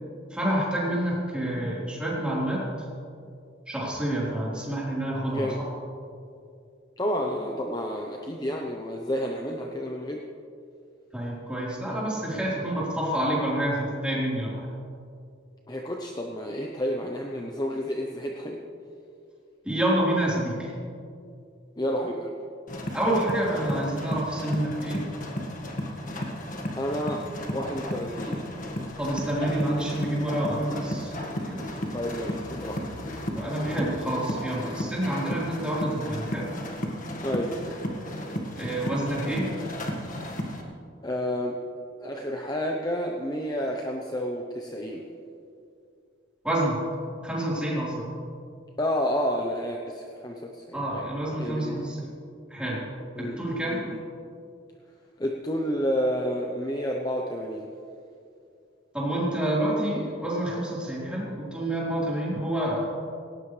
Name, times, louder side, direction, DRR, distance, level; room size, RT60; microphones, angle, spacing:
voice 1, 0.3-2.6 3.7-5.5 11.1-14.7 19.6-20.7 22.9-25.0 29.0-31.1 31.4-31.7 33.3-36.5 38.6-39.5 46.4-46.8 47.2-48.1 50.7-52.1 52.5-52.8 53.2-53.8 58.9-62.9, right 1 dB, 5° right, -7 dB, 4.1 m, -28 dB
voice 2, 5.3-5.6 7.0-10.2 15.7-18.6 21.8-22.4 26.8-27.3 27.5-28.4 31.9-32.8 37.2-37.6 41.0-41.6 42.0-45.0 48.8-51.0 51.4-51.9 53.2-54.0 55.2-57.7, equal, 20° left, 1 dB, 0.9 m, -30 dB
sound 1, 22.7-40.6, left 1 dB, 45° left, 1.8 m, -34 dB
18.0 x 18.0 x 3.4 m, 2.4 s
head